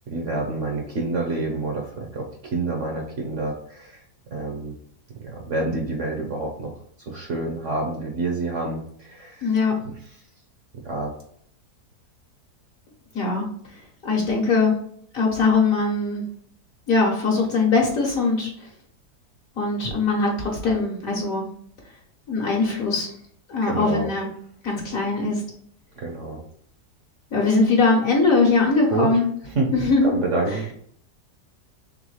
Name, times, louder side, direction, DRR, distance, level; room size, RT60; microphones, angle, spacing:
voice 1, 0.1-4.0 4.3-4.8 5.2-6.7 7.0-9.5 9.8-9.9 10.8-11.1 23.6-24.1 26.0-26.4 28.9-29.1 29.5-29.7 30.0-30.7, right 2 dB, 55° right, 1 dB, 1.0 m, -28 dB
voice 2, 9.4-9.8 13.1-13.5 14.0-14.7 15.1-16.2 16.9-18.5 19.6-21.5 22.3-23.1 23.5-24.3 24.6-25.4 27.3-29.2 29.7-30.1, left 3 dB, 60° left, -2 dB, 1.4 m, -21 dB
4.0 x 3.3 x 3.1 m, 0.64 s
omnidirectional pair, 1.7 m